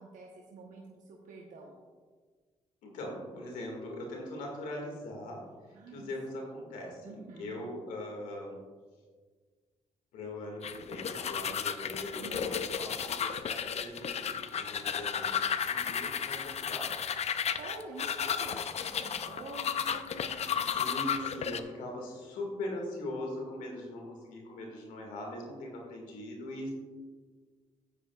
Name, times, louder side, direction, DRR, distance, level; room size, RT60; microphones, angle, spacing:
voice 1, 0.0-1.7 5.7-6.1 7.0-7.6 12.2-12.6 17.3-21.0, right 2 dB, 75° right, -2 dB, 1.1 m, -47 dB
voice 2, 2.8-5.4 5.7-8.6 10.1-16.9 20.6-26.7, left 1 dB, 90° left, 0 dB, 2.1 m, -41 dB
sound 1, 10.6-21.6, left 7 dB, 55° left, 0.5 m, -33 dB
11.5 x 8.6 x 2.4 m, 1.5 s
supercardioid pair, 60°, 13 cm